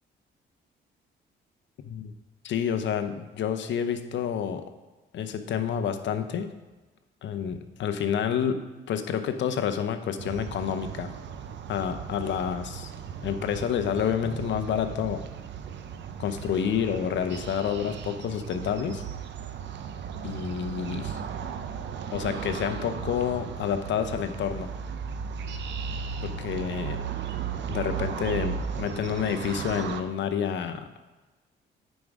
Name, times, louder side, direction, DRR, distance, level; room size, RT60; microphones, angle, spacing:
voice 1, 2.4-4.6 5.1-6.5 7.2-11.1 11.7-12.9 13.2-15.2 16.2-19.0 20.2-21.2 22.1-24.7 26.2-27.0 27.7-30.8, left 8 dB, 70° left, 8 dB, 0.7 m, -29 dB
sound 1, 10.2-30.0, right 7 dB, 65° right, 0.6 m, -36 dB
9.4 x 5.2 x 3.6 m, 1.2 s
cardioid pair, 90°, 20 cm